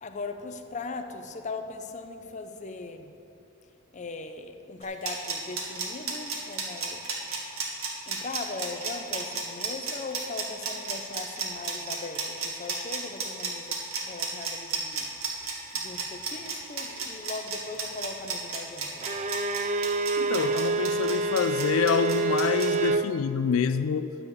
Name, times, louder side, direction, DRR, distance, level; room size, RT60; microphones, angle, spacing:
voice 1, 0.0-3.1 3.9-7.0 8.1-15.4 15.7-19.1, left 3 dB, 35° left, 0.6 m, -39 dB
sound 1, 4.8-22.7, right 5 dB, 85° right, 1.9 m, -33 dB
Bowed string instrument, 19.0-23.1, right 3 dB, 35° right, 0.4 m, -27 dB
voice 2, 20.2-24.2, left 6 dB, 80° left, 0.4 m, -27 dB
10.5 x 6.9 x 7.0 m
head